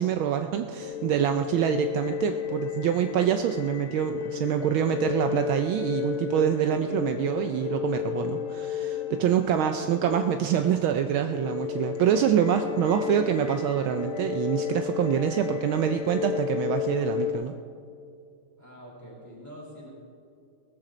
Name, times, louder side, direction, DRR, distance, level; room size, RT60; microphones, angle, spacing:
voice 1, 0.0-17.5, right 9 dB, 75° right, 7 dB, 1.4 m, -26 dB
sound 1, 0.8-17.3, left 8 dB, 90° left, 2.2 m, -33 dB
voice 2, 18.6-19.9, equal, 5° left, -4 dB, 4.3 m, -45 dB
18.0 x 14.0 x 3.9 m, 2.4 s
omnidirectional pair, 2.4 m